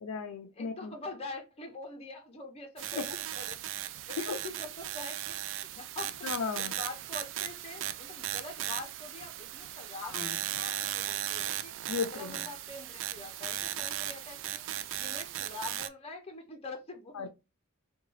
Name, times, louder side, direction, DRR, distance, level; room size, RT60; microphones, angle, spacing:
voice 1, 0.0-0.9 3.0-3.1 4.2-4.4 6.2-6.7 10.0-10.5 11.9-12.4 17.1-17.3, left 5 dB, 85° left, 0.5 m, -35 dB
voice 2, 0.5-3.6 4.1-5.3 5.8-6.3 6.6-11.8 12.0-14.6 15.0-17.3, left 2 dB, 30° left, 0.7 m, -44 dB
sound 1, 2.8-15.9, right 12 dB, 60° right, 0.3 m, -37 dB
3.7 x 2.3 x 3.1 m
head